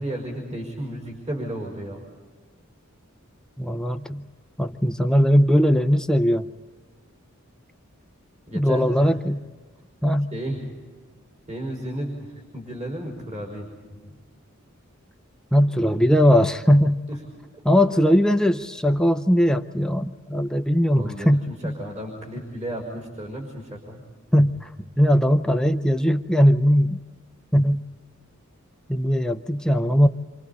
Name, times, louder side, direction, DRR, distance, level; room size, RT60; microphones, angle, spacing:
voice 1, 0.0-2.0 8.5-9.1 10.3-10.7 11.5-12.2 12.5-14.2 17.1-17.2 21.0-24.0, right 1 dB, 35° right, 0 dB, 5.2 m, -33 dB
voice 2, 3.6-4.2 4.6-6.5 8.5-9.4 10.0-10.3 15.5-17.0 17.6-21.7 24.3-24.7 25.0-27.0 27.5-27.8 28.9-30.1, equal, 5° left, 7 dB, 0.6 m, -19 dB
28.5 x 27.0 x 4.2 m, 1.5 s
head